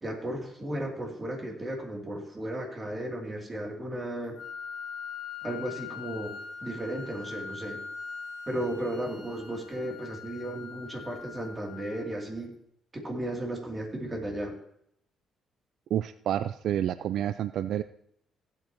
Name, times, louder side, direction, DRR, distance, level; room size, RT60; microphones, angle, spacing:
voice 1, 0.0-4.4 5.4-6.3 6.6-7.8 8.5-12.5 12.9-14.5, right 1 dB, 25° right, 0 dB, 2.9 m, -34 dB
Wind instrument woodwind instrument, 4.3-12.3, left 6 dB, 55° left, 2.1 m, -42 dB
voice 2, 15.9-17.8, right 10 dB, 75° right, 13 dB, 0.3 m, -29 dB
16.0 x 8.8 x 3.0 m, 0.73 s
cardioid pair, 90°, 0 cm